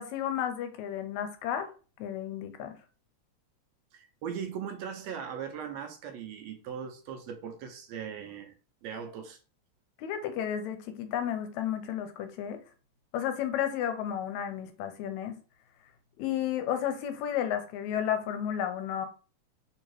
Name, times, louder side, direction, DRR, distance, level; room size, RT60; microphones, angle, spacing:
voice 1, 0.0-1.7 2.0-2.7 10.0-12.6 13.1-15.4 16.2-19.1, left 9 dB, 85° left, 1.9 m, -32 dB
voice 2, 3.9-8.5 8.8-9.4, right 7 dB, 75° right, 1.7 m, -39 dB
4.5 x 2.8 x 3.1 m
omnidirectional pair, 3.3 m